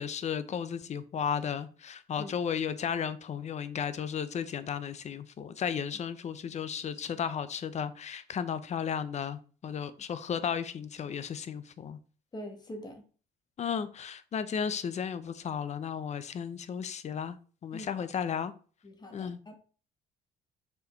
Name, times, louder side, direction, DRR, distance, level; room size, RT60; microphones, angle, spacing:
voice 1, 0.0-12.0 13.6-17.4 17.6-18.5 19.1-19.4, left 7 dB, 40° left, 0.8 m, -34 dB
voice 2, 12.3-13.0 17.7-17.9 18.8-19.6, equal, 25° left, 1.8 m, -43 dB
6.8 x 4.7 x 4.6 m
cardioid pair, 110°, 17 cm